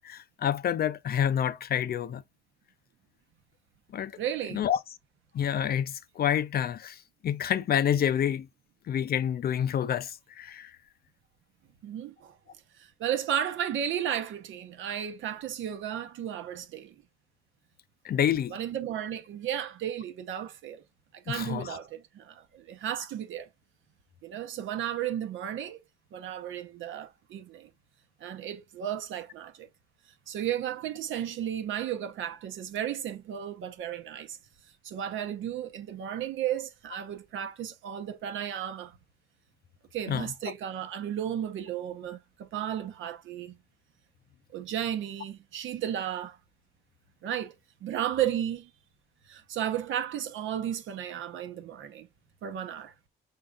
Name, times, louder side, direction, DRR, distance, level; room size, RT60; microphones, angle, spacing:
voice 1, 0.0-2.2 3.9-4.1 4.5-4.8 5.3-7.0 7.2-8.5 8.9-10.1 10.4-10.7 18.0-18.5 21.3-21.8 40.1-40.3, left 9 dB, 50° left, 0.5 m, -28 dB
voice 2, 4.2-4.7 11.8-12.4 12.8-16.9 18.5-20.8 21.1-23.5 24.2-25.8 26.1-27.7 28.2-29.7 30.3-34.4 34.8-39.0 39.9-43.6 44.5-46.4 47.2-47.5 47.8-48.7 49.3-52.1 52.4-52.9, right 10 dB, 75° right, 0.9 m, -34 dB
5.3 x 3.8 x 2.4 m
cardioid pair, 90°, 20 cm